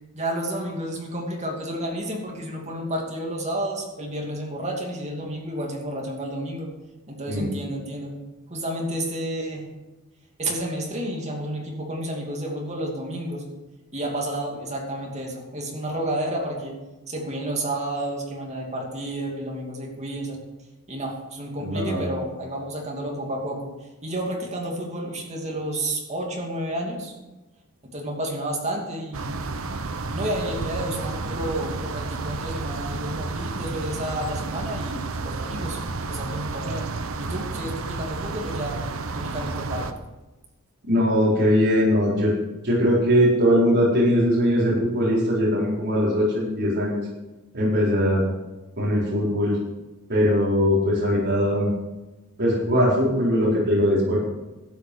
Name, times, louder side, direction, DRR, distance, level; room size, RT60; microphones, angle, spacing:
voice 1, 0.1-6.7 7.1-8.1 8.5-9.7 10.4-13.4 13.9-16.8 17.1-20.4 20.9-27.1 27.8-29.4 30.1-35.8 36.1-36.9 37.2-38.8 39.1-39.9, right 1 dB, 30° right, -1 dB, 2.7 m, -31 dB
voice 2, 21.6-22.1 40.8-42.3 42.6-47.0 47.5-48.2 48.8-49.6 50.1-51.7 52.4-54.2, equal, 50° right, -7 dB, 4.6 m, -21 dB
sound 1, 29.1-39.9, right 3 dB, 65° right, 0.9 m, -31 dB
12.5 x 9.2 x 6.3 m, 1.1 s
head